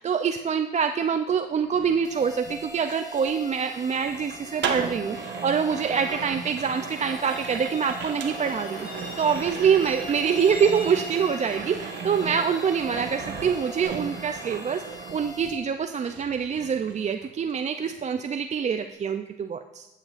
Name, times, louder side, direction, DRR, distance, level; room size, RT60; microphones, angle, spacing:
voice 1, 0.0-19.9, right 6 dB, 35° right, 7 dB, 0.4 m, -25 dB
sound 1, 1.6-15.7 16.0-17.5 17.8-18.1, right 6 dB, 65° right, 1.2 m, -37 dB
sound 2, 2.0-15.6, left 1 dB, 20° left, 1.9 m, -43 dB
Truck, 6.4-13.8, left 2 dB, 50° left, 2.8 m, -42 dB
12.0 x 8.8 x 2.5 m, 1.0 s
cardioid pair, 90°, 20 cm